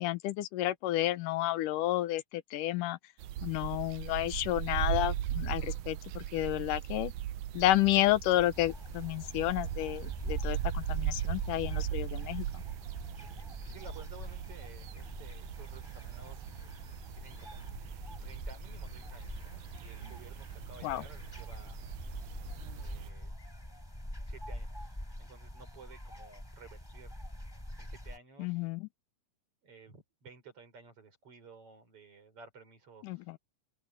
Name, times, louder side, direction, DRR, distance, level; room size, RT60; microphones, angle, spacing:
voice 1, 0.0-3.0 3.4-7.1 7.5-12.6 20.8-21.0 28.4-28.9 33.0-33.4, left 15 dB, 85° left, 2.5 m, -31 dB
sound 1, 3.2-23.1, right 12 dB, 75° right, 2.0 m, -39 dB
sound 2, 8.5-28.2, left 1 dB, 5° left, 5.1 m, -45 dB
voice 2, 13.7-16.4 17.1-17.6 18.2-21.8 22.7-23.3 24.3-27.2 27.8-28.6 29.6-33.3, right 4 dB, 45° right, 6.0 m, -54 dB
open air
omnidirectional pair, 3.7 m